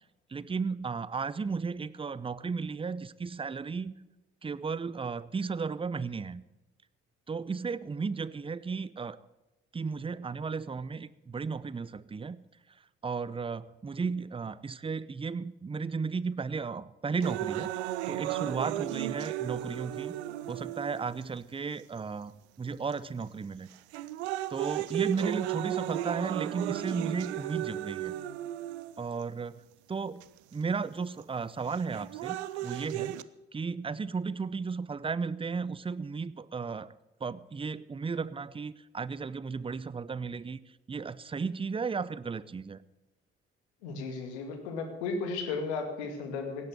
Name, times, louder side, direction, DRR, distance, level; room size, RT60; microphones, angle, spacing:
voice 1, 0.3-3.9 4.4-6.4 7.3-9.2 9.7-12.4 13.0-17.7 18.1-20.1 20.5-23.7 24.5-28.1 29.0-29.6 29.9-33.2 33.5-36.9 37.2-40.6 40.9-42.8, right 5 dB, 15° right, 18 dB, 0.6 m, -34 dB
sound 1, 17.2-21.2 22.0-22.1 22.9-23.2 23.7-29.2 30.2-30.3 31.7-33.2, right 13 dB, 75° right, 0.6 m, -35 dB
voice 2, 43.8-46.7, left 4 dB, 75° left, 6 dB, 2.3 m, -35 dB
17.0 x 8.4 x 7.7 m, 1.0 s
figure-of-eight pair, 50°, 33 cm